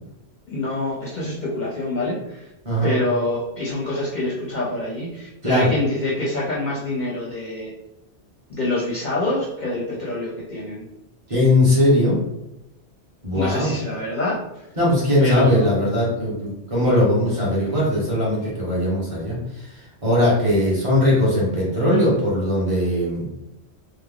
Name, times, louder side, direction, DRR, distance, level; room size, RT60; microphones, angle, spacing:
voice 1, 0.5-2.5 2.8-7.7 8.5-10.9 13.3-14.4 15.2-15.8 16.8-17.1, left 2 dB, 50° left, -5 dB, 0.7 m, -26 dB
voice 2, 11.3-12.2 13.2-13.7 14.8-19.4 20.0-23.3, left 1 dB, 30° right, -7 dB, 1.2 m, -19 dB
3.3 x 2.0 x 3.5 m, 0.89 s
omnidirectional pair, 1.1 m